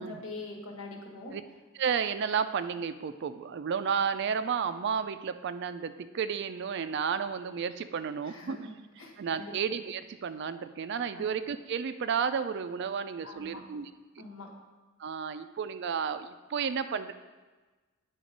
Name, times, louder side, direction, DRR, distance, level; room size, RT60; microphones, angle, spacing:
voice 1, 0.0-1.3 8.3-9.5 11.1-11.3 13.2-13.6 14.2-14.5, left 2 dB, 75° left, -1 dB, 1.5 m, -43 dB
voice 2, 1.7-8.7 9.2-13.9 15.0-17.1, right 6 dB, 55° right, 11 dB, 0.4 m, -32 dB
9.3 x 4.0 x 5.1 m, 1.3 s
head